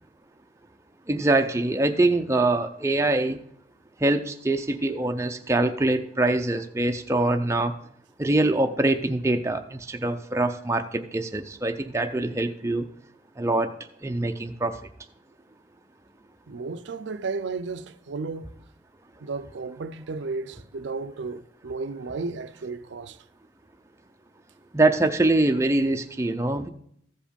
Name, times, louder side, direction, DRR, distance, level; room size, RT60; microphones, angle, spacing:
voice 1, 1.1-3.4 4.0-7.7 8.2-12.9 13.4-13.7 14.0-14.8 24.7-26.7, right 2 dB, 15° right, 0.5 m, -24 dB
voice 2, 16.5-18.5 19.2-23.2, right 4 dB, 70° right, 0.5 m, -33 dB
14.5 x 5.1 x 5.2 m
head